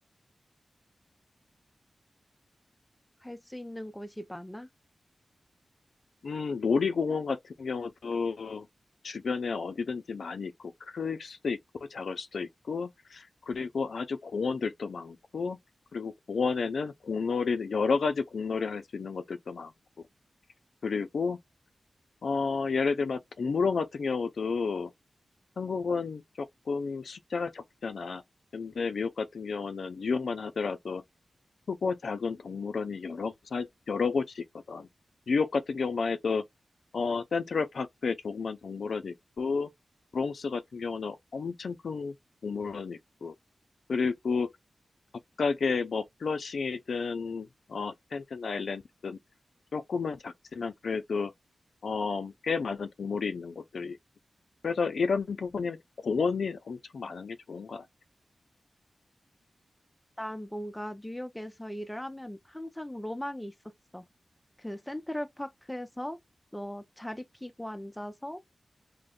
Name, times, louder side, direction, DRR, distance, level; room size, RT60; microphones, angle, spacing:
voice 1, 3.2-4.7 60.2-64.1 64.6-66.2 66.5-68.4, left 1 dB, 10° left, 0.5 m, -39 dB
voice 2, 6.2-8.7 9.0-11.6 11.9-15.6 15.9-19.7 20.8-21.4 22.2-24.9 25.6-28.2 28.5-31.0 31.7-34.9 35.3-36.4 36.9-39.7 40.1-42.2 42.4-43.3 43.9-44.5 45.4-49.2 49.7-51.3 51.8-54.0 54.6-55.8 56.0-57.8, left 5 dB, 80° left, 0.4 m, -31 dB
2.5 x 2.1 x 3.6 m
cardioid pair, 70°, 0 cm